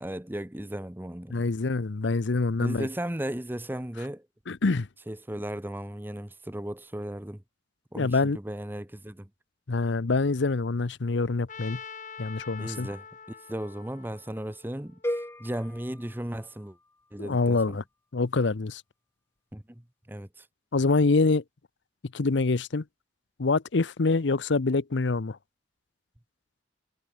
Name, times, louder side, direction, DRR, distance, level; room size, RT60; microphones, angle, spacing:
voice 1, 0.0-1.4 2.6-4.3 5.1-7.4 7.9-9.3 12.6-16.8 17.1-17.8 19.5-20.5, right 1 dB, 10° right, 0.9 m, -36 dB
voice 2, 1.3-2.9 4.5-4.9 8.0-8.4 9.7-11.8 12.2-12.9 17.2-17.8 18.1-18.8 20.7-21.4 22.1-22.8 23.4-25.4, left 3 dB, 75° left, 0.7 m, -25 dB
Trumpet, 11.5-15.5, left 6 dB, 40° left, 2.4 m, -45 dB
sound 1, 15.0-17.1, equal, 15° left, 2.3 m, -36 dB
head